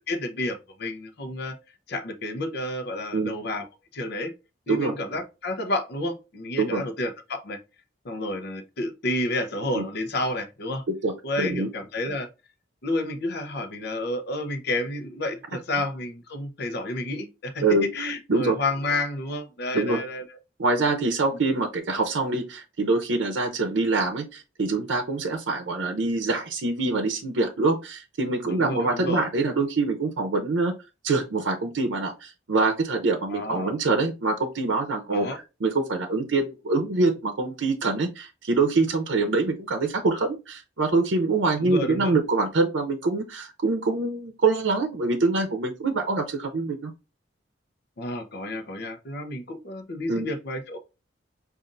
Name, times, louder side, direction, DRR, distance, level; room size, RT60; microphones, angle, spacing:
voice 1, 0.1-1.5 1.9-3.6 3.9-4.3 4.7-7.6 8.0-10.8 11.2-12.3 12.8-17.6 17.9-20.2 28.4-29.3 33.3-33.7 35.1-35.4 41.6-42.1 48.0-50.8, left 1 dB, 60° left, 0.7 m, -30 dB
voice 2, 11.0-11.7 17.6-17.9 18.3-18.6 19.7-20.0 20.6-30.7 31.0-46.9 50.1-50.3, right 3 dB, 90° right, 0.6 m, -25 dB
5.2 x 2.5 x 2.5 m
head